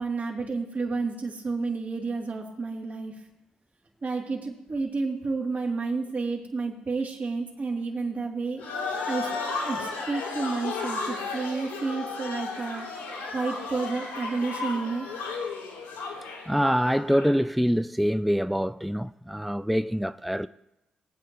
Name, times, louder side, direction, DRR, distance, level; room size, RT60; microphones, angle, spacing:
voice 1, 0.0-3.1 4.0-8.6 9.1-9.3 9.6-13.0 13.3-15.1, right 4 dB, 45° right, 2.9 m, -30 dB
sound 1, 8.6-17.4, left 4 dB, 85° left, 3.3 m, -34 dB
voice 2, 16.5-20.5, equal, ahead, 0.3 m, -25 dB
18.5 x 9.0 x 3.1 m
hypercardioid pair, 45°, 4 cm